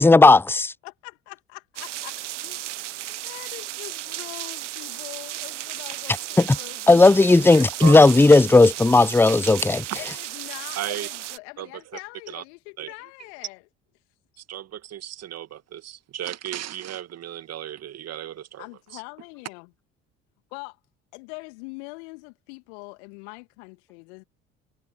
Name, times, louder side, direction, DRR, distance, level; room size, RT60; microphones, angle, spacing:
voice 1, 0.0-0.7 6.4-6.5 6.9-9.8, left 3 dB, 5° left, 0.8 m, -14 dB
voice 2, 0.8-2.1 2.4-2.7 3.0-7.7 9.9-13.6 18.6-19.7 20.5-20.8 21.1-24.2, left 31 dB, 65° left, 2.5 m, -42 dB
sound 1, 1.8-11.4, right 14 dB, 75° right, 1.0 m, -34 dB
voice 3, 10.8-11.1 11.6-12.0 12.3-12.4 12.8-12.9 14.4-18.7 18.9-19.0, right 11 dB, 45° right, 2.3 m, -34 dB
figure-of-eight pair, 60°, 36 cm